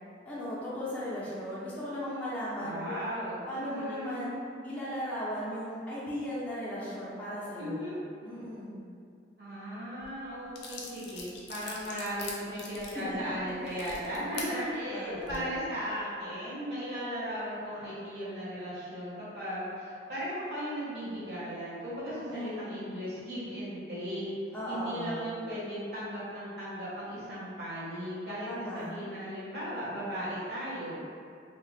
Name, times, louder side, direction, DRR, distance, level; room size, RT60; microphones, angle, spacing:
voice 1, 0.3-3.1 3.5-7.9 8.2-8.8 12.9-13.3 13.7-13.9 14.9-15.5 22.1-22.7 24.5-25.3 28.4-28.9, equal, 10° left, -11 dB, 0.5 m, -37 dB
voice 2, 2.6-4.2 7.6-8.0 9.4-24.2 24.7-31.1, equal, 60° right, -10 dB, 1.1 m, -37 dB
sound 1, 10.0-10.1 10.5-14.5 15.1-15.4, left 4 dB, 65° left, 0.4 m, -42 dB
2.8 x 2.1 x 3.1 m, 2.4 s
head